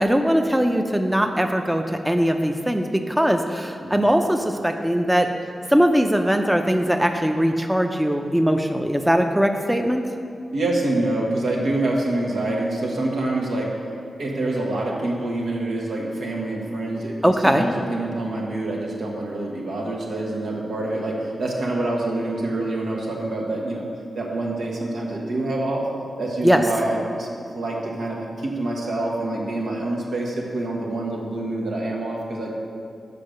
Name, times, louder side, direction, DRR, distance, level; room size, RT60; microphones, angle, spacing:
voice 1, 0.0-5.3 5.7-10.1 17.2-17.7 26.4-26.6, equal, 5° right, 5 dB, 0.5 m, -20 dB
voice 2, 10.5-13.7 14.2-17.1 17.4-23.9 24.1-25.8 26.2-27.3 27.5-32.5, right 2 dB, 85° right, -2 dB, 1.4 m, -26 dB
6.8 x 5.4 x 6.5 m, 2.4 s
wide cardioid pair, 85°, 0 cm